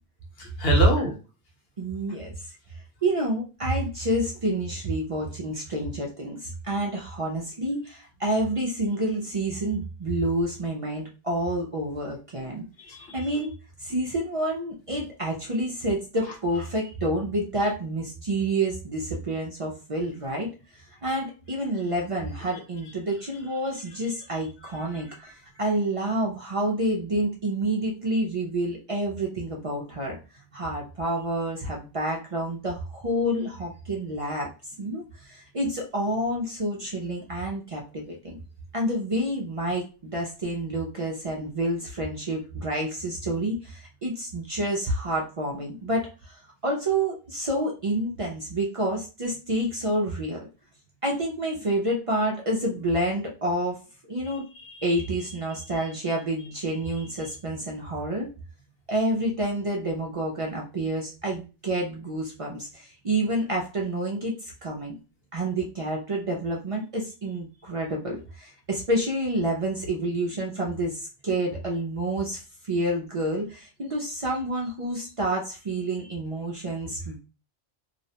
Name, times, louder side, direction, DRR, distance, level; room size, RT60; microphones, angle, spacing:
voice 1, 0.4-1.2 12.4-13.1 24.9-25.0 54.2-55.0, left 1 dB, 65° left, 1 dB, 1.0 m, -29 dB
voice 2, 1.8-2.4 3.0-12.6 13.1-13.5 13.8-20.5 20.7-30.2 30.5-34.5 34.8-38.4 38.7-50.4 51.0-53.8 54.1-58.3 58.9-64.9 65.3-77.2, right 1 dB, 50° right, -1 dB, 0.4 m, -28 dB
2.4 x 2.1 x 2.7 m, 0.32 s
omnidirectional pair, 1.1 m